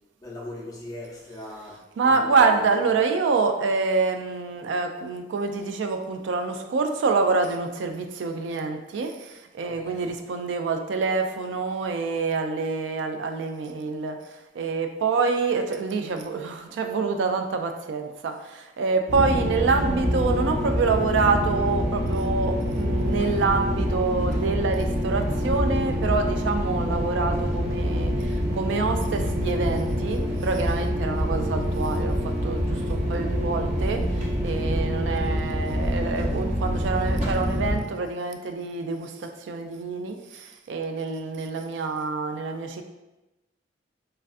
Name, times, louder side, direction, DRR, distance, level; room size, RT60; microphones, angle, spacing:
voice 1, 0.2-2.9 9.6-10.1, left 1 dB, 20° left, -4 dB, 0.6 m, -40 dB
voice 2, 2.0-42.8, right 4 dB, 75° right, 6 dB, 0.3 m, -26 dB
sound 1, 19.1-37.8, equal, 40° right, 0.6 m, -26 dB
3.2 x 2.3 x 2.5 m, 1.0 s
head